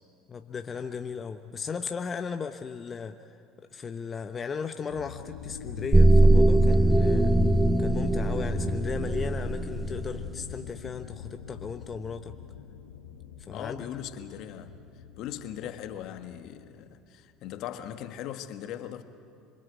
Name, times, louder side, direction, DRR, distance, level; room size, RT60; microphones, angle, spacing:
voice 1, 0.3-3.4 3.7-7.4 7.8-12.4 13.5-13.9, left 6 dB, 35° left, 1.0 m, -36 dB
sound 1, 4.9-16.3, left 7 dB, 85° left, 2.1 m, -39 dB
sound 2, 5.9-10.2, right 2 dB, 5° right, 0.6 m, -21 dB
voice 2, 13.5-14.8 15.2-19.0, left 10 dB, 60° left, 1.6 m, -39 dB
26.5 x 23.5 x 8.4 m
hypercardioid pair, 70°, 0 cm